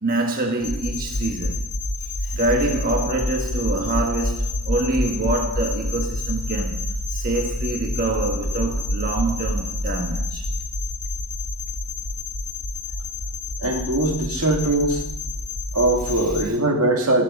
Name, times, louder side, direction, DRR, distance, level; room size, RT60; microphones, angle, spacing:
voice 1, 0.0-1.6 2.2-6.8 7.1-10.5, right 2 dB, 40° right, 1.4 m, -25 dB
sound 1, 0.6-16.5, left 1 dB, 90° left, 1.4 m, -28 dB
voice 2, 13.6-15.0 15.7-17.2, right 2 dB, 75° right, 2.3 m, -21 dB
12.5 x 12.5 x 5.3 m
head